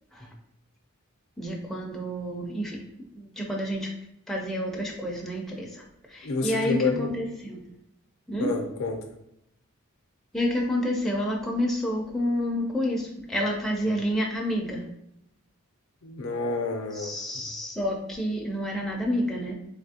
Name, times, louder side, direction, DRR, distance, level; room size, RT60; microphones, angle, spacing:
voice 1, 1.4-2.8 3.1-3.9 4.3-7.6 8.3-8.5 10.3-14.8 16.9-19.5, equal, ahead, -2 dB, 0.4 m, -29 dB
voice 2, 6.2-7.1 8.4-9.0 16.0-17.5, left 3 dB, 65° left, 3 dB, 0.5 m, -29 dB
3.4 x 2.7 x 2.8 m, 0.80 s
head